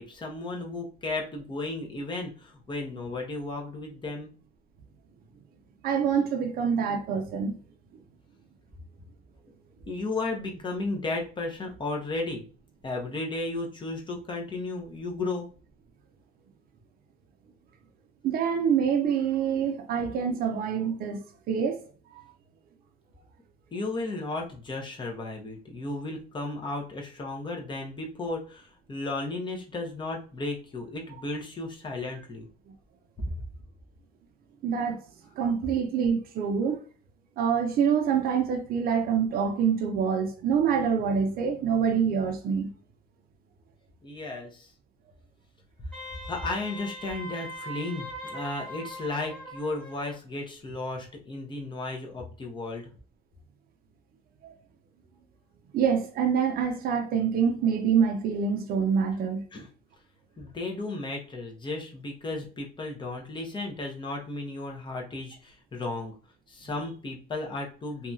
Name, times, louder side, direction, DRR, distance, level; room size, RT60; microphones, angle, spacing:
voice 1, 0.0-4.3 9.9-12.4 12.8-15.5 23.7-32.5 44.0-44.7 46.3-52.9 59.5-59.7 60.4-66.1 66.5-68.1, left 2 dB, 30° left, 0.8 m, -34 dB
voice 2, 5.8-7.6 18.2-21.8 34.6-35.0 35.4-36.8 37.4-42.7 54.4-54.5 55.7-59.4, right 7 dB, 60° right, 0.5 m, -26 dB
Wind instrument woodwind instrument, 45.9-50.1, equal, 5° left, 1.0 m, -41 dB
2.7 x 2.3 x 2.5 m
cardioid pair, 110°, 17 cm